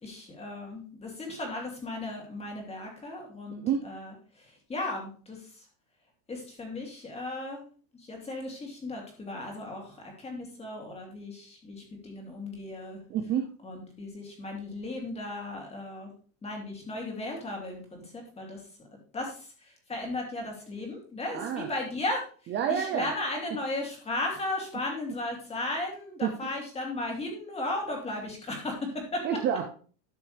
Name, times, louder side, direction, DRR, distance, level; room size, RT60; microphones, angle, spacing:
voice 1, 0.0-5.6 6.3-7.6 7.9-13.0 13.6-16.1 16.4-18.6 19.1-22.2 22.7-29.4, left 2 dB, 15° left, 1 dB, 2.6 m, -36 dB
voice 2, 3.6-3.9 13.1-13.5 21.3-21.7 22.5-23.1 26.2-26.3 29.2-29.7, right 8 dB, 25° right, 4 dB, 0.6 m, -28 dB
12.0 x 6.2 x 3.4 m, 0.41 s
supercardioid pair, 155°, 43 cm